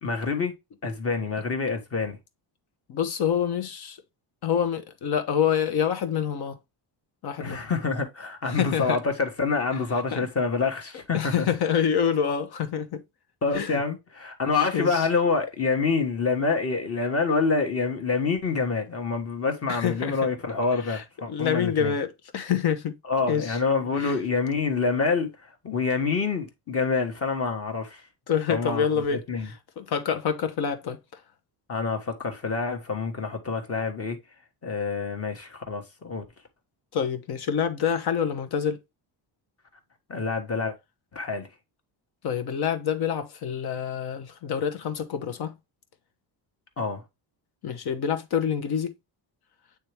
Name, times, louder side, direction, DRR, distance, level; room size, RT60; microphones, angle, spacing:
voice 1, 0.0-0.5 0.8-2.2 7.4-11.5 13.4-22.0 23.1-25.3 25.6-28.0 28.5-29.5 31.7-34.2 34.6-36.2 40.1-40.7 41.1-41.5 46.8-47.0, left 4 dB, 30° left, 1.3 m, -27 dB
voice 2, 2.9-4.0 4.4-6.6 7.2-7.6 8.5-9.0 10.1-10.2 11.1-13.0 13.5-13.8 14.7-15.1 19.7-20.2 20.9-23.0 23.3-23.6 24.0-24.1 28.3-31.0 36.9-38.8 42.2-45.5 47.6-48.9, left 8 dB, 55° left, 1.0 m, -27 dB
8.7 x 3.4 x 3.3 m
cardioid pair, 165°, 45 cm